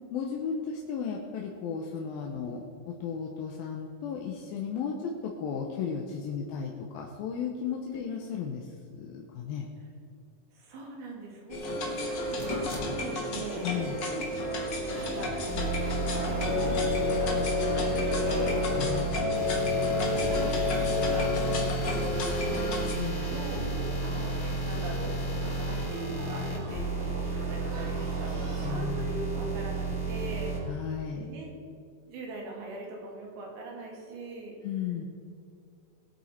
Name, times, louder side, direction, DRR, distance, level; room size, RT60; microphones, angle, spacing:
voice 1, 0.1-9.7 13.6-14.0 18.8-19.1 22.9-23.3 28.6-29.1 30.7-31.3 34.6-35.1, left 6 dB, 80° left, 0 dB, 2.7 m, -35 dB
voice 2, 10.5-12.1 12.3-13.7 15.0-15.8 16.2-18.7 20.1-20.5 20.9-21.3 21.8-22.7 23.3-24.3 24.6-25.2 25.5-28.3 28.7-30.5 31.2-31.6 32.0-34.6, right 2 dB, 90° right, -1 dB, 4.2 m, -41 dB
sound 1, 11.5-22.9, left 3 dB, 55° left, 1.2 m, -30 dB
Male speech man speaking / Child speech kid speaking / Conversation, 11.9-28.7, right 1 dB, 50° right, 2.9 m, -42 dB
sound 2, 15.5-30.6, right 3 dB, 25° left, 4.0 m, -32 dB
20.0 x 8.3 x 4.4 m, 2.3 s
omnidirectional pair, 4.3 m